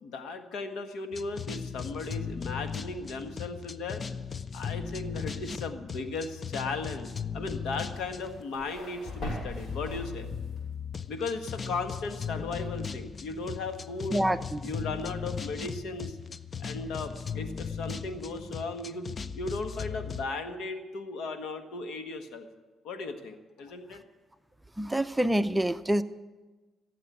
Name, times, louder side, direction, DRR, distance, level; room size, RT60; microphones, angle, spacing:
voice 1, 0.0-4.0 4.5-10.3 11.1-14.2 14.6-16.2 16.6-22.5 22.8-24.0, left 3 dB, 80° left, 7 dB, 1.5 m, -36 dB
sound 1, 1.1-8.4 9.0-20.2, left 6 dB, 40° left, 0.6 m, -38 dB
sound 2, 7.9-10.6, equal, 60° left, 6.4 m, -41 dB
voice 2, 14.1-14.6 24.8-26.0, right 1 dB, 10° right, 12 dB, 0.6 m, -26 dB
16.0 x 7.8 x 9.4 m, 1.2 s
cardioid pair, 90°, 0 cm